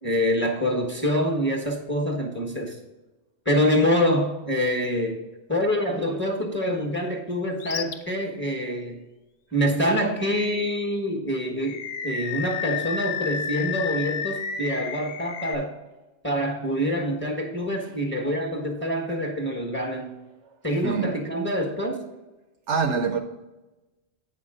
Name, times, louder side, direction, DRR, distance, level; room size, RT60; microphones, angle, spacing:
voice 1, 0.0-2.7 3.4-5.2 5.5-9.0 9.5-15.7 16.2-20.1 20.6-22.0, equal, 10° left, 1.2 m, -26 dB
Animal, 7.6-8.0 8.4-8.6 10.2-10.9 11.6-15.5, left 7 dB, 70° left, 1.0 m, -32 dB
voice 2, 20.8-21.2 22.7-23.2, right 5 dB, 70° right, 0.9 m, -25 dB
8.7 x 5.7 x 3.7 m
omnidirectional pair, 1.3 m